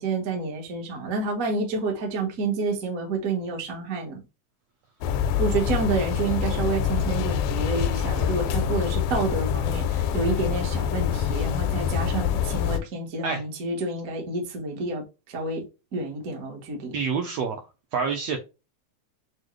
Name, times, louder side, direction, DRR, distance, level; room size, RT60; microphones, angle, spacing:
voice 1, 0.0-4.2 5.4-15.6 15.9-17.0, right 3 dB, 70° right, 0.8 m, -29 dB
sound 1, 5.0-12.8, left 8 dB, 90° left, 2.1 m, -25 dB
voice 2, 16.9-17.6 17.9-18.4, right 5 dB, 85° right, 1.5 m, -27 dB
6.2 x 2.1 x 3.1 m
omnidirectional pair, 3.6 m